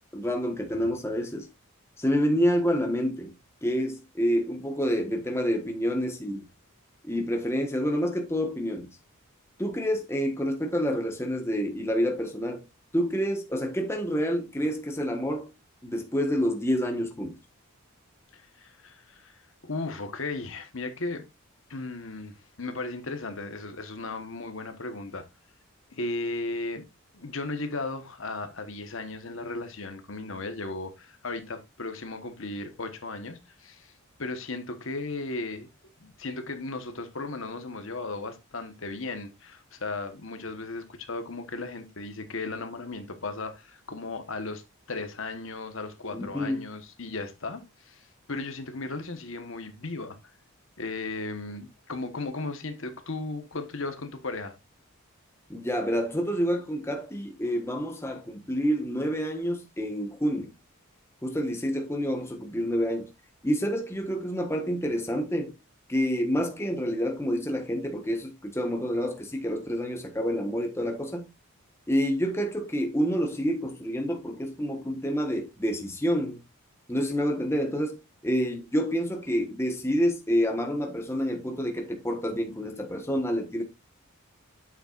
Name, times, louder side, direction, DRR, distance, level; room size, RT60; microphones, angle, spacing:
voice 1, 0.1-1.5 2.0-3.3 3.6-6.4 7.0-8.9 9.6-12.6 12.9-15.5 15.8-17.4 46.1-46.6 55.5-60.5 61.2-63.1 63.4-65.5 65.9-71.3 71.9-76.4 76.9-83.6, equal, 10° left, 1.3 m, -28 dB
voice 2, 18.3-21.2 21.7-25.2 25.9-26.8 27.1-33.9 34.2-35.7 36.0-44.6 44.9-50.2 50.8-54.5, left 3 dB, 60° left, 1.2 m, -36 dB
8.8 x 7.0 x 2.5 m
head